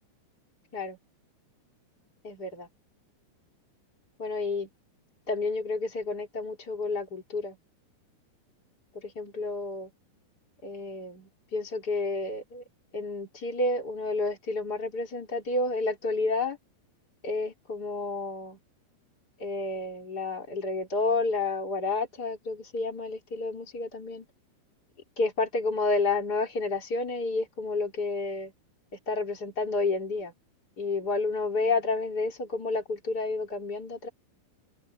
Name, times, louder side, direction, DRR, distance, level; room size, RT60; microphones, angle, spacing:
voice 1, 2.2-2.7 4.2-4.7 5.3-7.6 8.9-9.9 10.6-12.6 12.9-16.6 17.2-18.6 19.4-24.2 25.2-28.5 29.1-30.3 30.8-34.1, left 3 dB, 25° left, 3.2 m, -30 dB
open air
omnidirectional pair, 5.4 m